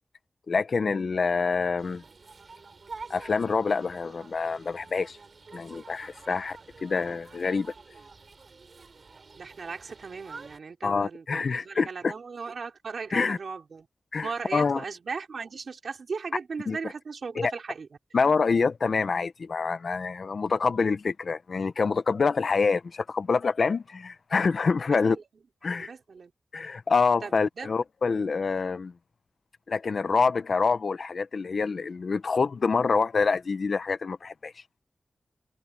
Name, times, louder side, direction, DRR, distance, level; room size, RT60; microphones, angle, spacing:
voice 1, 0.5-2.0 3.1-5.2 5.5-7.7 10.8-12.1 13.1-13.4 14.1-14.8 16.7-16.8 17.4-17.5 18.1-25.2 25.6-25.9 26.5-28.9 29.7-34.5, left 4 dB, 60° left, 0.8 m, -26 dB
sound 1, 1.8-10.6, right 4 dB, 50° right, 6.7 m, -48 dB
voice 2, 9.4-13.9 14.2-17.9 24.9-25.2 25.7-26.3 27.2-27.7, right 5 dB, 65° right, 4.2 m, -37 dB
wide cardioid pair, 145°, 0 cm